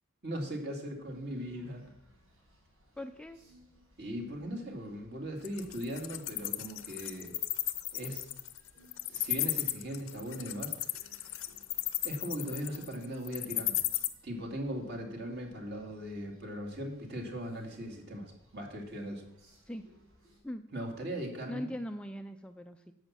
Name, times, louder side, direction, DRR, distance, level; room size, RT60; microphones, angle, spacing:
voice 1, 0.2-1.9 4.0-7.3 7.9-8.2 9.1-10.7 11.2-11.4 12.0-13.8 14.2-19.2 20.7-21.6, equal, 50° right, 2 dB, 2.4 m, -39 dB
sound 1, 1.0-20.4, equal, 90° right, 5.2 m, -63 dB
voice 2, 3.0-3.4 19.6-19.9 20.4-20.7 21.5-22.9, left 1 dB, 5° left, 6 dB, 0.4 m, -40 dB
Wild animals, 5.4-14.1, left 16 dB, 65° left, 0.7 m, -34 dB
11.0 x 7.2 x 7.4 m, 0.79 s
head